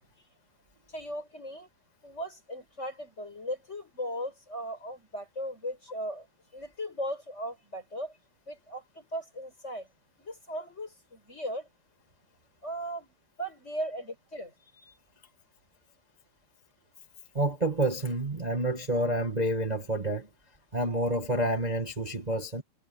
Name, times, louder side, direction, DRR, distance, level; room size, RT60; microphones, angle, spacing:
voice 1, 0.9-1.7 2.0-6.3 6.5-8.1 8.5-9.9 10.2-11.7 12.6-14.9, equal, 15° left, 5.6 m, -38 dB
voice 2, 17.3-20.3 20.7-22.6, right 1 dB, 55° right, 0.4 m, -28 dB
omnidirectional pair, 4.4 m